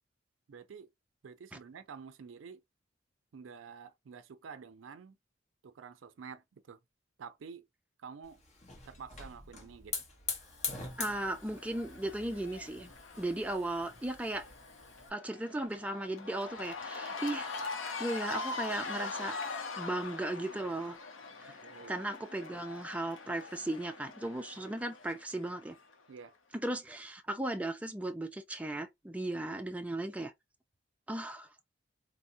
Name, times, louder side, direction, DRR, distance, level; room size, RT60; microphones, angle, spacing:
voice 1, 0.5-0.9 1.2-2.6 3.3-5.2 5.6-6.8 7.2-7.7 8.0-8.4 8.8-10.1 21.6-22.0 26.1-26.4, right 6 dB, 75° right, 0.4 m, -49 dB
Hiss / Fire, 8.2-15.1, left 4 dB, 35° left, 0.9 m, -43 dB
Cheering / Crowd, 10.6-25.9, left 4 dB, 85° left, 0.6 m, -43 dB
voice 2, 11.0-12.9 13.2-14.5 15.1-17.5 18.0-19.4 19.8-21.0 21.4-21.6 21.9-25.8 26.5-30.3 31.1-31.5, right 1 dB, 5° right, 0.3 m, -36 dB
3.4 x 2.0 x 2.6 m
head